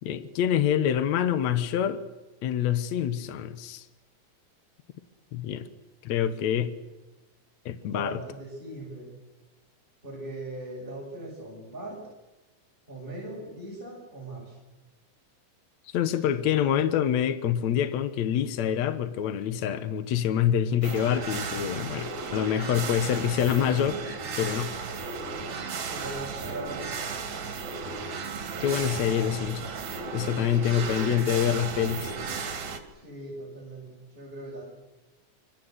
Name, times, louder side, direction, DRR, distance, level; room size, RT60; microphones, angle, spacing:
voice 1, 0.0-2.0 2.4-3.9 5.3-5.7 6.0-6.8 7.7-8.2 15.9-24.0 24.4-24.7 28.6-29.7 30.1-32.1, left 9 dB, 65° left, 11 dB, 2.3 m, -26 dB
voice 2, 7.9-9.1 10.0-12.0 12.9-14.6 16.1-16.2 16.5-17.1 25.9-26.8 30.6-31.1 32.9-34.6, right 1 dB, 15° right, -4 dB, 7.1 m, -40 dB
sound 1, 20.8-32.8, right 5 dB, 65° right, 3.6 m, -35 dB
26.0 x 25.0 x 8.0 m, 1.1 s
omnidirectional pair, 3.6 m